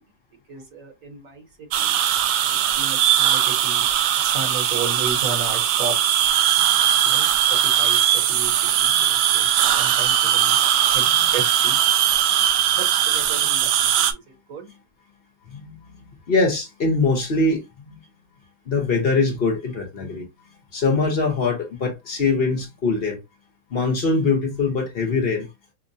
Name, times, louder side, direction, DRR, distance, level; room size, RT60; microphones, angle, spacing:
voice 1, 0.5-2.0 2.4-3.9 4.2-6.0 7.0-9.5 9.8-10.6 10.9-11.8 12.7-14.2 14.5-14.7, right 4 dB, 60° right, 1.2 m, -34 dB
sound 1, 1.7-14.1, right 10 dB, 90° right, 1.2 m, -19 dB
voice 2, 15.5-18.0 18.7-20.3 20.7-23.2 23.7-25.5, left 3 dB, 45° left, 0.8 m, -23 dB
5.3 x 2.1 x 2.6 m
omnidirectional pair, 1.8 m